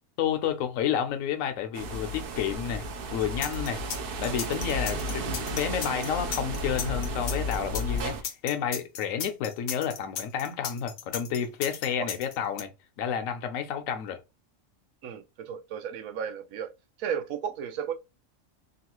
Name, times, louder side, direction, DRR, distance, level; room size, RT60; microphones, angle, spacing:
voice 1, 0.2-2.8 3.1-3.8 4.2-12.7 13.0-14.2, left 8 dB, 80° left, 1.0 m, -30 dB
sound 1, 1.7-8.2, equal, 60° right, 0.6 m, -33 dB
sound 2, 3.4-12.6, left 7 dB, 60° left, 0.7 m, -35 dB
voice 2, 15.0-16.7 17.0-17.9, right 8 dB, 90° right, 1.0 m, -34 dB
3.0 x 2.4 x 2.9 m
omnidirectional pair, 1.4 m